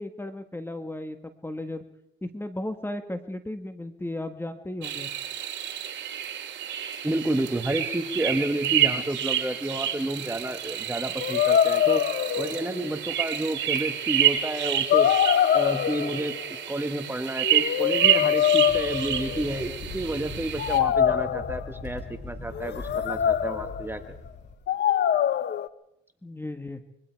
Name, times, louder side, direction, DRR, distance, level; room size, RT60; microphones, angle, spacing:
voice 1, 0.0-1.8 2.2-5.1 26.2-26.8, left 1 dB, 10° left, 9 dB, 1.6 m, -35 dB
sound 1, 4.8-20.8, right 11 dB, 70° right, 2.5 m, -29 dB
voice 2, 7.0-12.0 12.4-15.1 15.5-24.2, right 1 dB, 10° right, 8 dB, 1.6 m, -30 dB
sound 2, 11.2-12.9 13.7-13.8 14.9-16.4 17.4-19.7 20.6-21.8 22.5-23.8 24.7-25.7, left 9 dB, 60° left, 0.8 m, -24 dB
sound 3, 18.7-24.5, left 3 dB, 40° left, 4.9 m, -40 dB
25.5 x 22.5 x 4.7 m, 0.80 s
cardioid pair, 90°, 20 cm